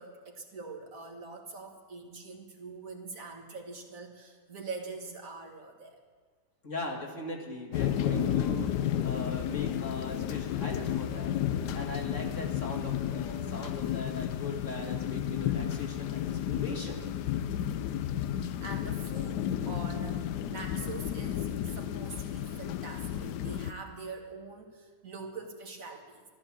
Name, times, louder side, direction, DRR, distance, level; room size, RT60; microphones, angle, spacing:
voice 1, 0.0-6.0 18.6-26.2, right 4 dB, 55° right, 2 dB, 2.1 m, -44 dB
voice 2, 6.6-17.0, left 2 dB, 50° left, 1 dB, 2.2 m, -39 dB
sound 1, 7.7-23.7, left 10 dB, 85° left, 1.3 m, -32 dB
14.0 x 12.5 x 7.3 m, 1.5 s
omnidirectional pair, 1.7 m